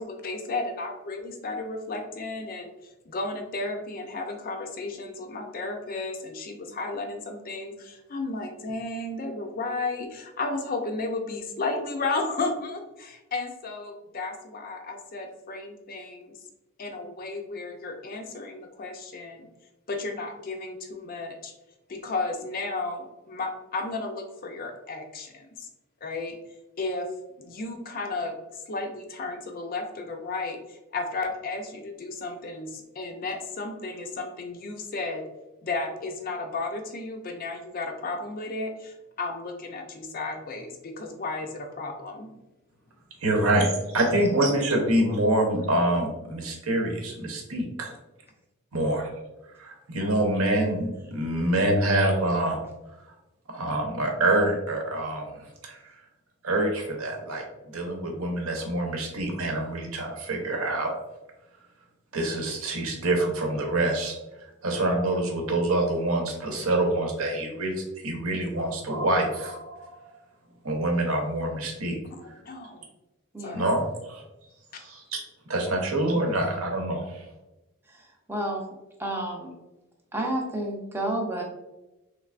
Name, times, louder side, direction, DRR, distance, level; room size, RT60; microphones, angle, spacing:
voice 1, 0.0-2.7 3.0-16.4 16.8-19.5 19.9-21.5 21.9-25.7 26.0-26.4 26.8-27.1 27.4-35.3 35.6-42.3 72.1-72.8 73.4-73.6 74.7-74.8, left 3 dB, 40° left, 4 dB, 0.5 m, -33 dB
voice 2, 43.2-43.7 43.9-47.9 48.7-49.1 49.6-52.6 53.5-55.3 55.6-55.8 56.4-57.4 57.7-60.9 62.1-64.2 64.6-69.9 70.6-72.0 73.5-74.2 74.8-75.2 75.5-77.0, right 1 dB, 75° right, 1 dB, 0.8 m, -26 dB
voice 3, 73.3-73.6 76.0-76.2 77.9-78.6 79.0-79.5 80.1-81.4, right 1 dB, 10° right, -1 dB, 0.5 m, -31 dB
3.3 x 3.2 x 2.4 m, 0.99 s
head